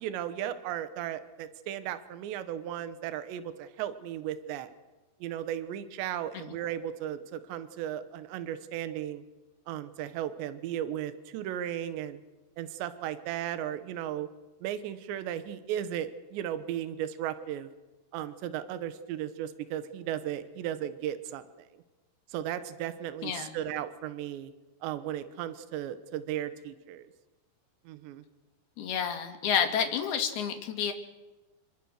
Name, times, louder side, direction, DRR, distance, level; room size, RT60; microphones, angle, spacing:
voice 1, 0.0-4.7 5.2-9.2 9.7-12.2 12.6-14.3 14.6-17.7 18.1-21.4 22.3-24.5 24.8-27.1 27.9-28.2, right 11 dB, 80° right, 11 dB, 3.4 m, -35 dB
voice 2, 23.2-23.6 28.8-30.9, left 7 dB, 65° left, 5 dB, 4.1 m, -29 dB
28.0 x 24.5 x 6.6 m, 1.1 s
omnidirectional pair, 5.0 m